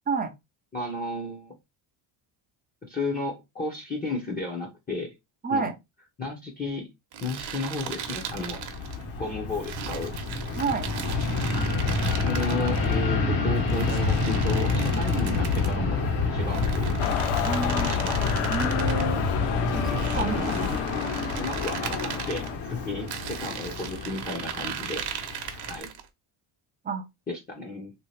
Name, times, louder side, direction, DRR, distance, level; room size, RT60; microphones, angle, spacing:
voice 1, 0.7-1.5 2.8-5.1 5.5-5.7 6.2-6.9 7.2-8.6 9.2-10.1 12.3-16.0 16.3-16.9 17.7-18.2 20.1-21.1 21.4-25.0 25.7-25.9 27.3-27.9, left 2 dB, 20° left, 0.7 m, -33 dB
voice 2, 5.4-5.7 10.6-10.9 17.5-18.0 18.5-19.2 19.7-20.4 26.8-27.0, right 4 dB, 20° right, 0.4 m, -29 dB
sound 1, 7.1-9.0 9.6-12.9 13.7-15.8 16.4-19.1 19.8-22.5 23.1-26.1, right 8 dB, 50° right, 0.8 m, -37 dB
Fixed-wing aircraft airplane, 8.0-25.8, left 3 dB, 60° left, 1.3 m, -28 dB
sound 2, 17.0-22.6, left 10 dB, 75° left, 0.7 m, -33 dB
3.1 x 2.9 x 3.2 m
cardioid pair, 160°, 50 cm